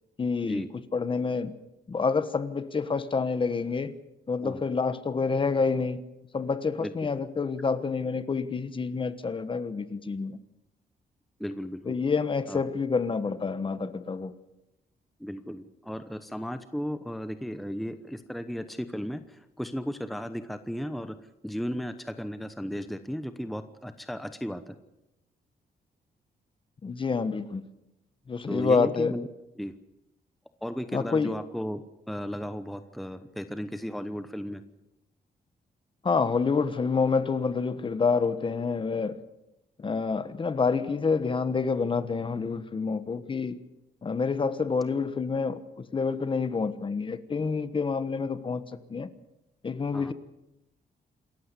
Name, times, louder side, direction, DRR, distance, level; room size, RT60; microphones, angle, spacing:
voice 1, 0.2-0.6 0.9-1.5 1.9-3.9 4.3-6.0 6.3-10.4 11.9-14.3 26.8-27.6 28.3-29.1 30.9-31.3 36.0-39.2 39.8-43.6 44.0-48.6 48.9-49.1 49.6-50.1, left 5 dB, 30° left, 12 dB, 1.3 m, -28 dB
voice 2, 11.4-12.0 12.5-12.6 15.2-21.2 21.4-24.8 28.5-29.3 29.6-29.7 30.6-34.6 49.9-50.1, equal, ahead, 10 dB, 0.9 m, -35 dB
27.5 x 14.5 x 8.4 m, 0.91 s
wide cardioid pair, 150°, 17 cm